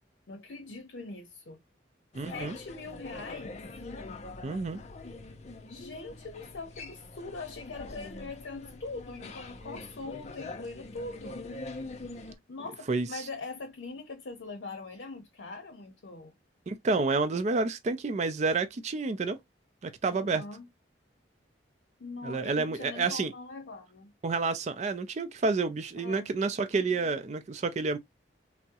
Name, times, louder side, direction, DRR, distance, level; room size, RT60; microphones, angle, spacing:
voice 1, 0.3-1.6 2.3-3.6 5.7-11.4 12.5-16.3 20.1-20.7 22.0-24.1 26.0-26.3, left 3 dB, 80° left, 0.6 m, -42 dB
sound 1, 2.1-12.4, left 3 dB, 40° left, 0.4 m, -44 dB
voice 2, 2.1-2.6 4.4-4.8 12.9-13.2 16.7-19.4 19.8-20.4 22.2-23.3 24.2-28.0, right 3 dB, 40° right, 0.4 m, -29 dB
3.5 x 2.0 x 2.7 m
head